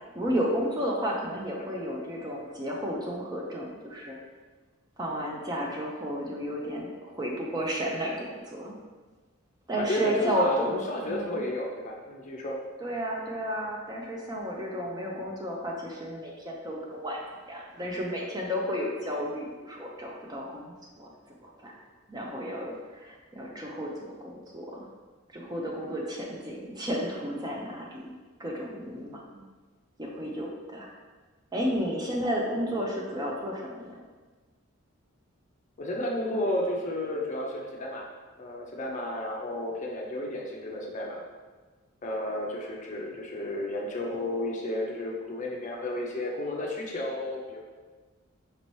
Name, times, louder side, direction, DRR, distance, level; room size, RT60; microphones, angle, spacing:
voice 1, 0.1-4.2 5.0-8.7 9.7-11.4 12.8-21.1 21.6-21.7 22.1-24.9 25.3-28.1 28.4-29.4 30.0-30.9 31.5-34.0, equal, 20° right, -2 dB, 0.4 m, -32 dB
voice 2, 9.8-12.6 35.8-38.0 38.4-41.2 42.0-47.6, left 1 dB, 35° left, -1 dB, 0.5 m, -32 dB
5.2 x 2.7 x 3.1 m, 1.3 s
head